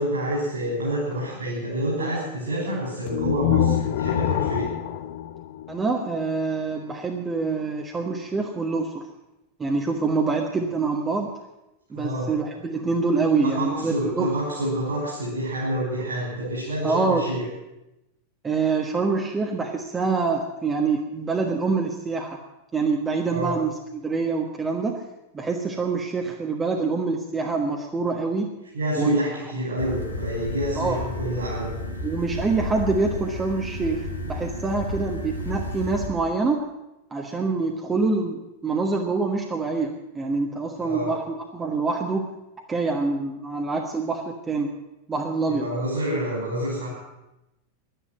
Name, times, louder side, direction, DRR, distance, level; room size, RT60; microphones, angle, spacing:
voice 1, 0.0-4.7 12.0-12.3 13.4-17.4 23.3-23.5 28.7-31.7 40.8-41.1 45.5-46.9, right 1 dB, 65° right, -4 dB, 5.3 m, -28 dB
sound 1, 3.1-6.2, left 12 dB, 50° left, 0.7 m, -26 dB
voice 2, 5.7-9.1 9.6-11.3 11.9-14.3 16.8-17.4 18.4-22.4 22.7-25.0 25.3-28.6 29.0-29.2 30.8-31.0 32.0-36.7 37.1-42.3 42.7-44.7 45.1-45.7, right 4 dB, 15° right, 1 dB, 1.3 m, -25 dB
sound 2, 29.8-36.1, left 2 dB, 75° left, 1.7 m, -32 dB
11.5 x 10.5 x 9.3 m, 0.94 s
figure-of-eight pair, 90°, 0 cm